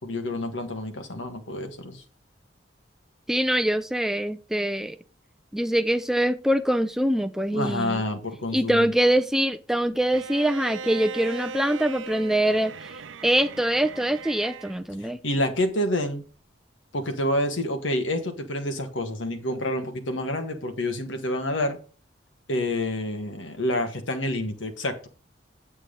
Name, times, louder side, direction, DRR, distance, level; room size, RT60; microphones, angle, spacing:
voice 1, 0.0-2.0 7.5-8.9 15.0-16.2 16.9-21.8 22.5-25.1, left 1 dB, 85° left, 1.6 m, -28 dB
voice 2, 3.3-5.0 5.5-8.0 8.5-12.9 13.2-15.2, right 1 dB, ahead, 0.4 m, -24 dB
Bowed string instrument, 10.1-14.8, right 5 dB, 80° right, 0.6 m, -38 dB
8.8 x 7.6 x 3.8 m
head